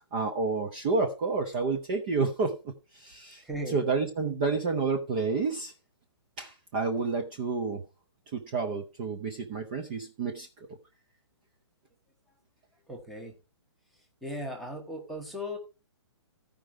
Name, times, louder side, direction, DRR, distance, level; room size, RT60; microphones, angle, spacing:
voice 1, 0.1-3.4 3.7-5.7 6.4-7.8 8.3-10.5, right 4 dB, 20° right, 3 dB, 0.7 m, -30 dB
voice 2, 3.4-3.8 12.9-13.4 14.2-15.6, equal, ahead, 1 dB, 1.0 m, -37 dB
14.5 x 5.1 x 4.5 m, 0.29 s
hypercardioid pair, 175°, 15 cm